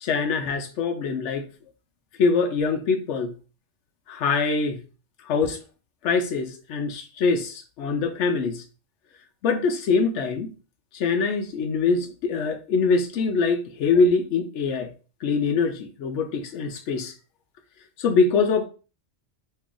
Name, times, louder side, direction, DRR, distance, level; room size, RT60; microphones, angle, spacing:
voice 1, 0.0-1.5 2.2-3.3 4.1-4.8 5.2-5.6 6.0-8.6 9.4-10.5 10.9-14.9 15.2-17.1 18.0-18.7, left 4 dB, 75° left, 0.9 m, -23 dB
3.2 x 2.3 x 3.7 m
omnidirectional pair, 1.2 m